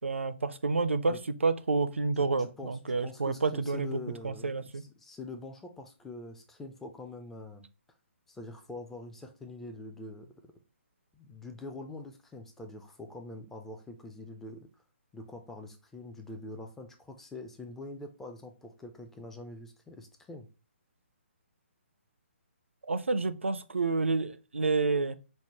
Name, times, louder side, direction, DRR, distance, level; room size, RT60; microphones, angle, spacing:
voice 1, 0.0-4.8 22.9-25.1, right 3 dB, 70° right, 0.4 m, -29 dB
voice 2, 2.2-7.7 8.3-10.5 11.1-14.7 15.1-20.5, left 2 dB, 5° left, 0.3 m, -44 dB
5.2 x 2.0 x 2.9 m
figure-of-eight pair, 135°, 7 cm